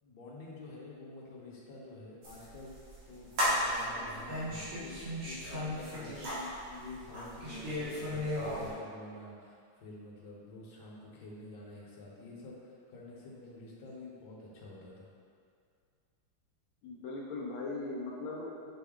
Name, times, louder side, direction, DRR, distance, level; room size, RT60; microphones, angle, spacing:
voice 1, 0.0-2.7 3.1-5.0 5.3-15.1, left 2 dB, 60° left, -5 dB, 1.3 m, -48 dB
sound 1, 2.2-8.7, equal, 85° right, 2.2 m, -35 dB
voice 2, 16.8-18.7, left 3 dB, 80° left, -4 dB, 1.4 m, -40 dB
6.7 x 2.3 x 3.5 m, 2.2 s
omnidirectional pair, 2.2 m